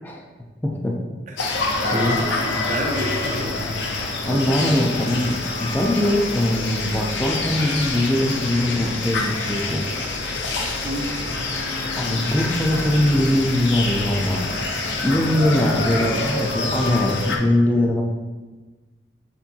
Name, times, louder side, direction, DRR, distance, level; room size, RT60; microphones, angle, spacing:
voice 1, 0.6-1.0 1.9-2.2 4.3-5.3 5.6-9.9 12.0-14.7 15.0-18.0, left 1 dB, 10° left, 0 dB, 0.4 m, -21 dB
voice 2, 1.3-3.6 5.1-5.3 10.8-12.2, right 1 dB, 45° right, 1 dB, 0.6 m, -31 dB
sound 1, 1.4-17.4, left 3 dB, 75° left, 0.6 m, -26 dB
7.0 x 2.7 x 2.7 m, 1.3 s
head